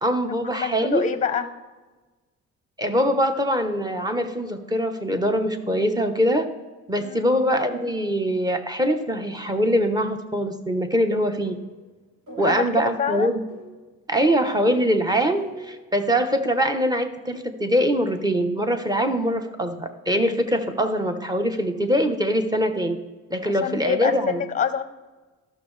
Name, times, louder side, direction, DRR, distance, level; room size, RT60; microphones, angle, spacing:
voice 1, 0.0-1.0 2.8-6.5 6.9-11.6 12.4-13.4 14.1-23.0 23.3-24.4, equal, 15° right, 6 dB, 1.0 m, -23 dB
voice 2, 0.5-1.5 7.0-7.3 12.3-13.3 23.4-24.8, left 7 dB, 25° left, 11 dB, 0.7 m, -26 dB
sound 1, 11.4-11.9 12.3-12.7 13.5-15.0 15.4-15.9, equal, 75° right, 2.8 m, -42 dB
13.5 x 6.4 x 3.3 m, 1.2 s
cardioid pair, 90°, 30 cm